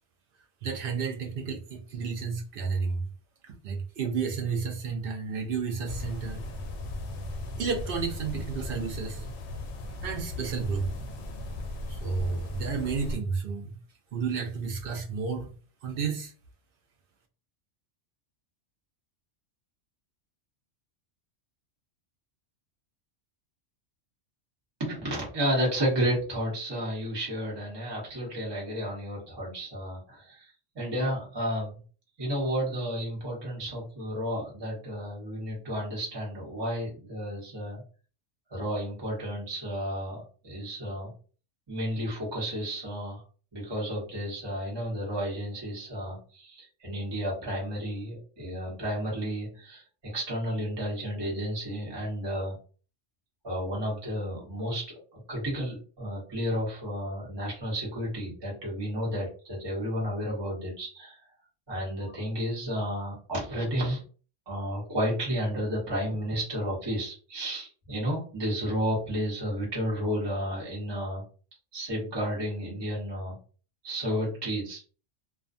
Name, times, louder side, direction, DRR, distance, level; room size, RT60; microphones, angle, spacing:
voice 1, 0.6-3.1 3.4-6.4 7.6-9.3 10.0-10.9 11.9-13.7 14.1-15.5 15.8-16.3, right 5 dB, 60° right, 0.6 m, -31 dB
sound 1, 5.8-13.2, left 1 dB, 70° left, 0.8 m, -37 dB
voice 2, 24.8-31.7 32.2-37.8 38.5-41.1 41.7-43.2 43.5-52.6 53.4-54.8 55.1-61.2 61.7-64.0 64.5-71.2 71.7-73.4 73.8-74.8, equal, 25° right, 0.9 m, -32 dB
2.4 x 2.1 x 2.5 m
omnidirectional pair, 1.2 m